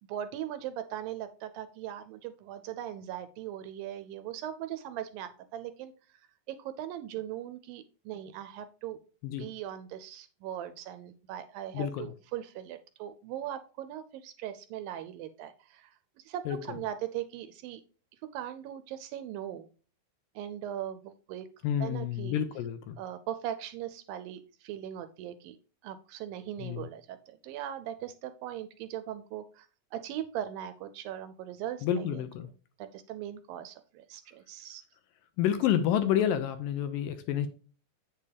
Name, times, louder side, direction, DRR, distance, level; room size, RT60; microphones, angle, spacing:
voice 1, 0.1-9.0 9.4-17.8 18.3-19.7 20.4-21.5 21.8-22.4 23.0-25.6 25.8-32.2 32.8-34.8, right 11 dB, 80° right, 11 dB, 2.1 m, -39 dB
voice 2, 11.7-12.1 16.5-16.6 21.6-23.0 26.6-26.9 31.8-32.5 35.4-37.5, left 10 dB, 80° left, 10 dB, 2.1 m, -29 dB
8.4 x 6.8 x 3.3 m, 0.37 s
omnidirectional pair, 4.4 m